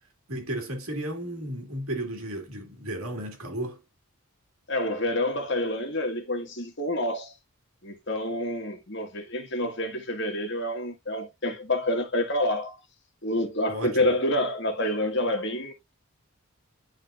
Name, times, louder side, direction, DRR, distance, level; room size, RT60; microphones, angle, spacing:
voice 1, 0.3-3.8 13.7-14.0, right 1 dB, 75° right, 2.2 m, -34 dB
voice 2, 4.7-7.3 7.8-12.8 13.2-15.7, left 1 dB, 55° left, 1.6 m, -28 dB
10.5 x 3.7 x 2.4 m
head